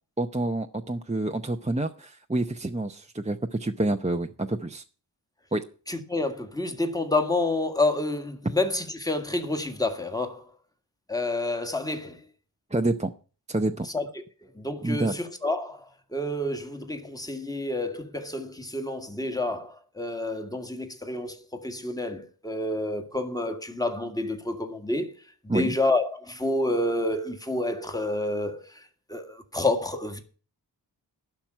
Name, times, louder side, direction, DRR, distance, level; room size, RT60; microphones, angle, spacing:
voice 1, 0.2-4.8 5.5-5.6 12.7-13.1 13.5-13.9 14.8-15.1 25.5-25.7, right 2 dB, 15° right, 0.7 m, -28 dB
voice 2, 5.9-10.4 11.1-12.2 13.9-14.2 14.6-15.8 16.1-25.1 25.4-28.6 29.1-30.2, left 2 dB, 10° left, 1.8 m, -29 dB
12.0 x 5.9 x 9.1 m
wide cardioid pair, 50°, 42 cm